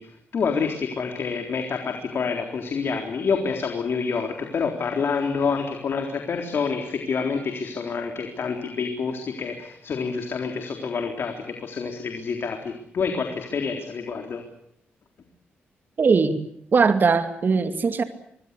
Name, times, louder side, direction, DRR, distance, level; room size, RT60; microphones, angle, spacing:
voice 1, 0.0-14.4, left 5 dB, 65° left, 4 dB, 3.9 m, -27 dB
voice 2, 16.0-16.4 16.7-18.0, right 5 dB, 50° right, 8 dB, 2.5 m, -20 dB
26.0 x 21.0 x 8.4 m, 0.71 s
cardioid pair, 75°, 4 cm